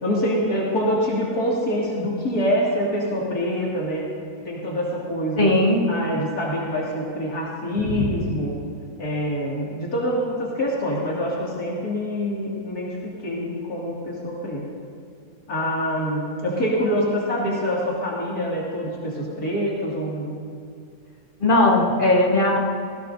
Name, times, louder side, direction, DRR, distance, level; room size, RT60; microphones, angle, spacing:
voice 1, 0.0-4.1 4.4-5.6 5.9-8.5 9.0-14.6 15.5-20.4, equal, 75° left, -5 dB, 2.7 m, -25 dB
voice 2, 5.4-5.8 7.8-8.1 21.4-22.6, left 2 dB, 35° left, -3 dB, 2.1 m, -18 dB
18.0 x 16.5 x 2.6 m, 2.3 s
omnidirectional pair, 1.7 m